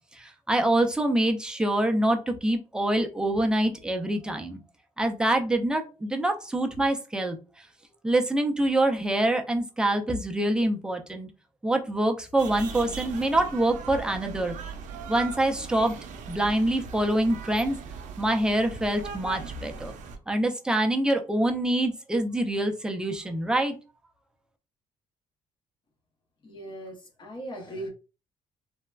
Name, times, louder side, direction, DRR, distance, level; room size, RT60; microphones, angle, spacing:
voice 1, 0.2-4.6 5.0-7.4 8.0-11.3 11.6-14.5 15.1-16.0 16.3-17.8 18.2-19.9 20.3-23.7, right 1 dB, 5° right, 4 dB, 0.3 m, -25 dB
sound 1, 12.4-20.2, right 6 dB, 65° right, 0.5 m, -39 dB
voice 2, 26.4-27.9, right 1 dB, 35° left, 0 dB, 0.7 m, -38 dB
3.2 x 2.1 x 2.2 m, 0.32 s
cardioid pair, 160°, 14 cm